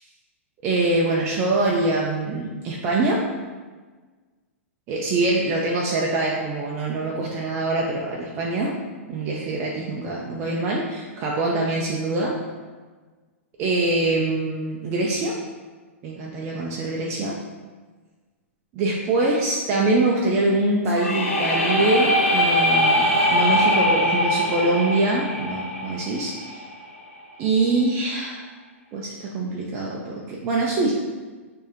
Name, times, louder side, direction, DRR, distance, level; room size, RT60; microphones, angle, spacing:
voice 1, 0.6-3.2 4.9-8.7 9.1-12.3 13.6-15.4 16.0-17.4 18.7-26.6 27.4-28.4 28.9-30.9, right 2 dB, 35° right, -3 dB, 0.5 m, -24 dB
sound 1, 20.9-26.7, equal, 80° left, 0.8 m, -22 dB
4.5 x 2.8 x 2.9 m, 1.4 s
hypercardioid pair, 110°, 7 cm